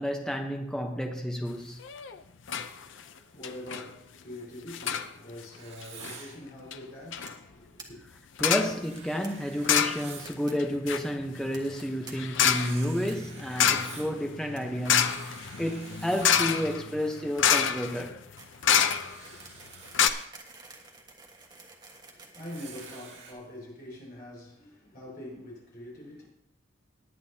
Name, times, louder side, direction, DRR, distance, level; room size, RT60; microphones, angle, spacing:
voice 1, 0.0-1.8 8.4-15.2 15.6-18.2, equal, 5° left, 0.9 m, -31 dB
sound 1, 1.8-2.2 2.5-2.7 3.0-3.1 3.4-3.9 4.7-5.1 5.8-6.2 6.7-6.8 7.1-7.3 8.4-8.8 9.6-10.3 10.6-19.4 19.7-19.8 19.9-20.1, left 8 dB, 70° left, 0.6 m, -27 dB
voice 2, 2.6-8.0 22.1-26.2, left 1 dB, 45° left, 5.3 m, -44 dB
Writing, 5.6-6.4 8.5-10.3 12.4-14.2 14.7-16.7 18.5-20.1 22.5-23.3, right 5 dB, 60° right, 2.2 m, -48 dB
sound 2, 7.3-7.5 7.8-7.9 8.1-8.2 8.4-8.5 9.2-9.3 9.9-10.5 10.8-11.0 11.5-12.1 12.4-12.8 13.1-13.2 13.6-13.9 14.3-14.6 14.9-15.5 15.7-23.8, right 3 dB, 20° right, 1.4 m, -50 dB
20.0 x 8.9 x 2.8 m
head